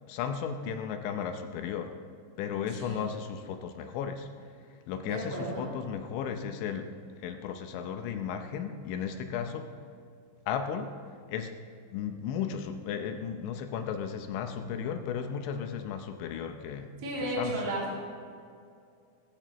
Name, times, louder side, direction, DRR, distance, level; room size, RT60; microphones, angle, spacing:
voice 1, 0.1-1.9 2.4-4.3 4.9-6.9 7.2-9.7 10.5-10.9 11.3-11.6 11.9-16.9 17.2-17.8, left 7 dB, 80° left, 6 dB, 2.9 m, -35 dB
voice 2, 5.0-5.6 17.0-18.0, right 1 dB, 40° right, -6 dB, 4.3 m, -33 dB
19.5 x 14.5 x 3.1 m, 2.3 s
omnidirectional pair, 5.6 m